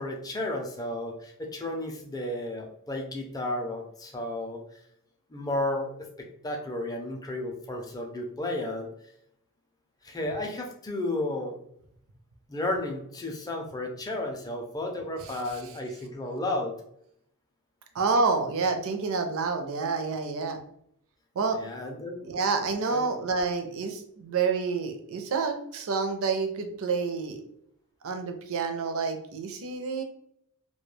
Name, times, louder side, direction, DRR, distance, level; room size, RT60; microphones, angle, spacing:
voice 1, 0.0-4.6 5.3-8.9 10.0-11.6 12.5-16.8 21.5-22.4 22.9-23.1, left 1 dB, 15° left, 2 dB, 0.4 m, -33 dB
voice 2, 17.9-20.6 21.4-21.6 22.3-27.4 28.0-30.0, right 4 dB, 65° right, 6 dB, 0.5 m, -28 dB
2.2 x 2.2 x 3.1 m, 0.71 s
head